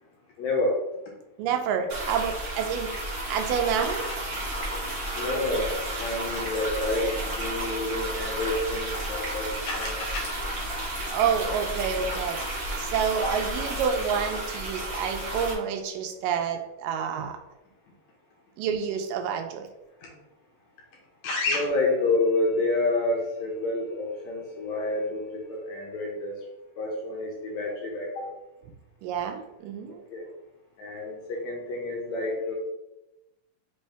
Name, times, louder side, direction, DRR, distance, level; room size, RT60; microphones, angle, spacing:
voice 1, 0.4-0.8 4.7-10.3 13.2-13.4 21.2-25.2 25.5-26.3 26.8-28.3 30.1-30.2 30.8-32.6, left 2 dB, 75° left, -2 dB, 1.8 m, -28 dB
voice 2, 1.4-4.1 11.1-12.4 12.8-17.4 18.6-19.7 29.0-30.0, right 7 dB, 90° right, 5 dB, 2.3 m, -28 dB
sound 1, 1.9-15.5, right 1 dB, 60° right, 0.9 m, -32 dB
5.5 x 2.7 x 3.3 m, 0.92 s
omnidirectional pair, 3.8 m